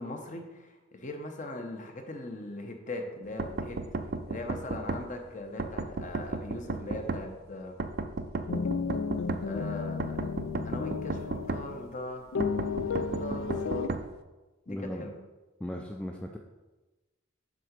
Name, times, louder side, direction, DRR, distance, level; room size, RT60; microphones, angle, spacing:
voice 1, 0.0-3.8 4.3-7.7 9.4-10.2 10.6-12.3 12.9-14.0 14.7-15.2, left 2 dB, 40° left, 4 dB, 1.0 m, -40 dB
sound 1, 3.4-5.0 5.6-7.2 7.8-9.4 10.0-11.6 12.4-14.0, right 3 dB, 50° right, 0.5 m, -33 dB
sound 2, 8.5-11.9 12.3-13.9, left 5 dB, 75° left, 0.4 m, -33 dB
voice 2, 14.7-15.1 15.6-16.4, left 1 dB, 5° left, 1 dB, 0.4 m, -37 dB
7.6 x 3.8 x 6.6 m, 1.1 s
head